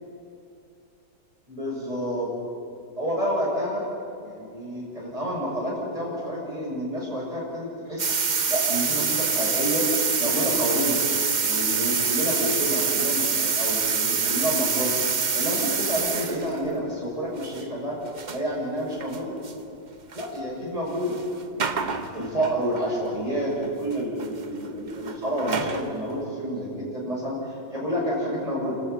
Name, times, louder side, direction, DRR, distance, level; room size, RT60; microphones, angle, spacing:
voice 1, 1.5-2.3 3.0-3.9 4.2-8.2 8.5-9.9 10.2-11.0 11.4-15.0 15.3-18.0 18.3-19.4 20.1-21.2 21.6-28.8, equal, 20° right, -5 dB, 7.1 m, -29 dB
sound 1, 8.0-16.6 17.4-17.6 18.0-18.4 19.0-19.2 19.4-19.5 20.1-20.3 21.0-21.2 21.6-22.8 23.6-23.9 24.2-25.9, right 5 dB, 35° right, 0.8 m, -26 dB
29.0 x 13.5 x 8.4 m, 2.6 s
omnidirectional pair, 1.8 m